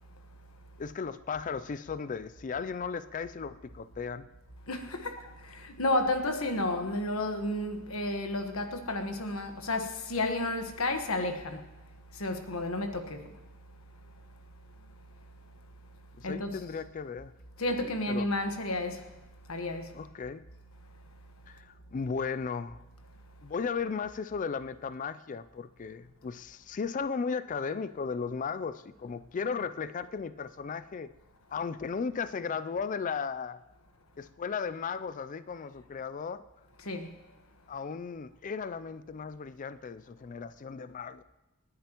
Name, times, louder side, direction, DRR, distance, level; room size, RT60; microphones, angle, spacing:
voice 1, 0.8-4.3 16.2-17.3 17.8-18.3 19.9-20.4 21.5-22.8 23.4-31.1 31.5-33.6 34.2-36.4 37.7-41.2, left 5 dB, 35° left, 0.4 m, -36 dB
voice 2, 4.7-11.8 12.1-13.4 13.7-13.8 16.2-16.6 17.6-19.1 19.5-20.0 36.8-37.4, left 2 dB, 80° left, 1.3 m, -32 dB
28.0 x 10.5 x 3.0 m
head